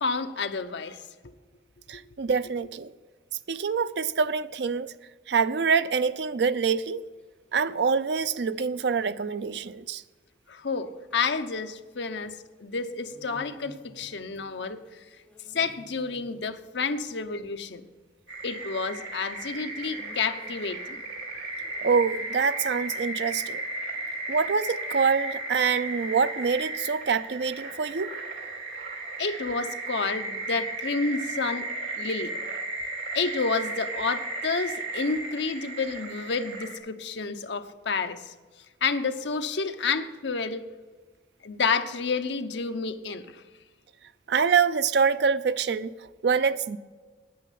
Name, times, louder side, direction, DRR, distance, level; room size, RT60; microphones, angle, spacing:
voice 1, 0.0-1.0 10.5-12.4 12.6-14.8 15.5-17.8 18.4-21.0 29.2-31.7 32.0-32.3 33.1-38.3 38.8-40.6 41.4-43.4, left 4 dB, 70° left, 0.8 m, -30 dB
voice 2, 1.9-2.9 3.5-4.9 5.3-7.0 7.5-10.0 21.8-23.6 24.3-28.1 44.3-45.9 46.2-46.8, right 5 dB, 65° right, 0.5 m, -25 dB
sound 1, 6.7-20.9, left 1 dB, 5° left, 1.4 m, -54 dB
sound 2, 18.3-36.8, right 2 dB, 80° right, 2.3 m, -35 dB
9.6 x 9.3 x 7.4 m
head